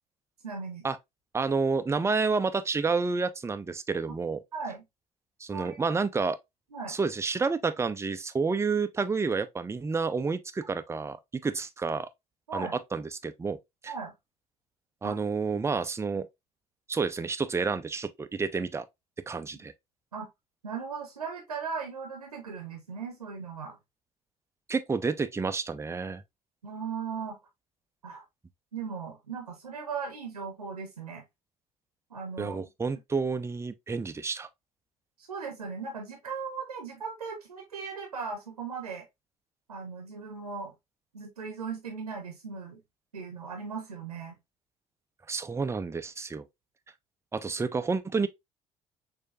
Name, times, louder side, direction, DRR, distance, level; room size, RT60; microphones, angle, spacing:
voice 1, 0.4-0.8 4.5-4.8 5.5-5.8 6.7-7.0 12.5-12.8 13.9-14.1 15.0-15.2 20.1-20.3 20.6-23.8 26.6-27.4 28.0-28.2 28.7-31.2 32.1-32.7 35.2-39.1 39.7-40.7 41.1-42.8 43.1-44.3, right 5 dB, 85° right, 0.8 m, -38 dB
voice 2, 1.3-4.4 5.4-6.4 6.9-11.2 11.4-12.1 12.5-13.6 13.8-13.9 15.0-16.3 16.9-18.9 19.3-19.7 24.7-26.2 32.4-34.5 45.3-46.4 47.3-48.3, right 4 dB, 15° right, 0.5 m, -29 dB
6.4 x 2.7 x 2.4 m
figure-of-eight pair, 50°, 19 cm